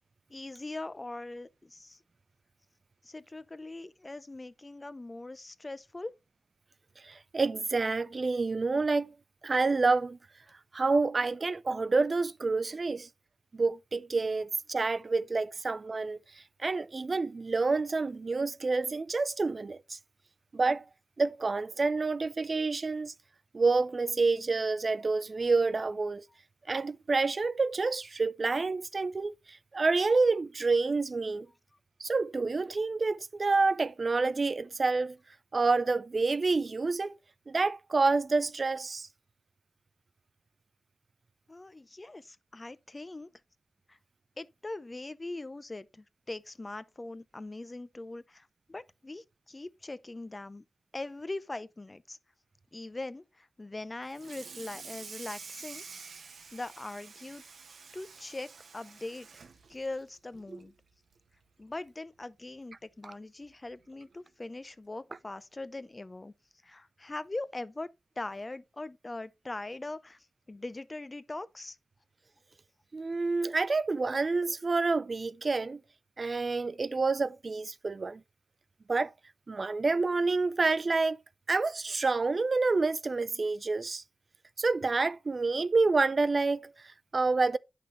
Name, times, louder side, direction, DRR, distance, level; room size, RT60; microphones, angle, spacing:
voice 1, 0.3-2.0 3.0-6.1 41.5-43.3 43.9-44.0 44.4-50.6 50.9-52.2 52.7-55.8 56.5-57.4 57.9-59.3 59.7-60.7 61.6-66.3 66.6-67.9 68.2-71.8, left 2 dB, 30° left, 0.6 m, -41 dB
voice 2, 7.0-9.1 9.4-10.2 10.7-13.1 13.5-16.2 16.6-20.0 20.5-20.8 21.2-23.1 23.5-26.2 26.7-31.5 32.0-35.2 35.5-37.1 37.5-39.1 72.9-75.8 76.2-78.2 78.9-79.1 79.5-81.2 81.5-84.0 84.6-87.6, right 3 dB, 50° right, 0.4 m, -28 dB
Water tap faucet / Sink (filling or washing), 54.1-60.7 61.1-61.4 61.7-61.8 62.2-62.3 63.4-63.5 64.0-64.2, right 5 dB, 80° right, 1.2 m, -48 dB
9.3 x 5.9 x 3.2 m
cardioid pair, 60°, 0 cm